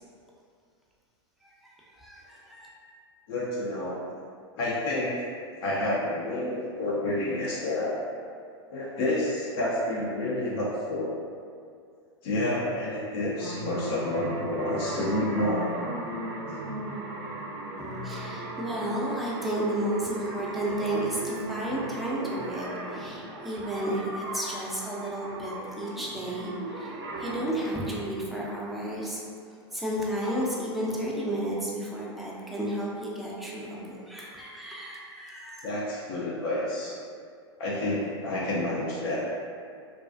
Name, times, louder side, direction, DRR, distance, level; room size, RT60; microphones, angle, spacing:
voice 1, 1.4-2.7 17.8-26.9 27.2-29.2 29.7-35.7, right 1 dB, ahead, -6 dB, 0.4 m, -32 dB
voice 2, 3.3-4.0 4.6-5.2 5.6-7.9 8.7-11.1 12.2-15.7 35.6-37.0 37.6-39.3, left 1 dB, 60° left, -5 dB, 0.5 m, -29 dB
sound 1, 13.4-29.0, right 1 dB, 65° right, 0.4 m, -37 dB
2.3 x 2.3 x 2.4 m, 2.2 s
hypercardioid pair, 105°, 15 cm